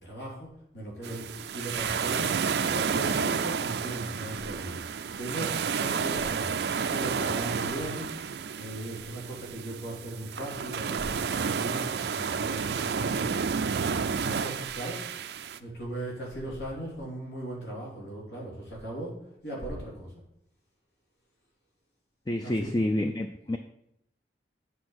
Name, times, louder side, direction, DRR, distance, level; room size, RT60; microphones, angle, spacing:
voice 1, 0.0-8.2 8.6-13.3 14.2-15.0 15.6-20.1 22.4-22.7, right 1 dB, 75° left, -4 dB, 3.0 m, -38 dB
sound 1, 1.0-15.6, right 6 dB, 70° right, 0.4 m, -31 dB
voice 2, 22.3-23.6, left 1 dB, 25° left, 6 dB, 0.4 m, -28 dB
8.3 x 4.7 x 6.3 m, 0.77 s
head